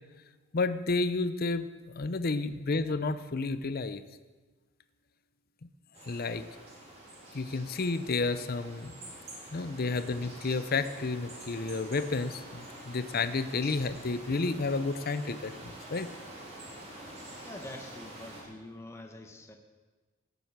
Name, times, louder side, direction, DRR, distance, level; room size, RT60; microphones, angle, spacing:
voice 1, 0.5-4.0 6.1-6.4 7.3-9.1 9.5-16.1, left 3 dB, 45° left, 12 dB, 0.6 m, -31 dB
sound 1, 5.9-18.4, right 1 dB, 30° right, 3.3 m, -47 dB
voice 2, 17.4-19.5, left 1 dB, 15° left, 3 dB, 1.1 m, -45 dB
17.0 x 7.8 x 6.6 m, 1.3 s
head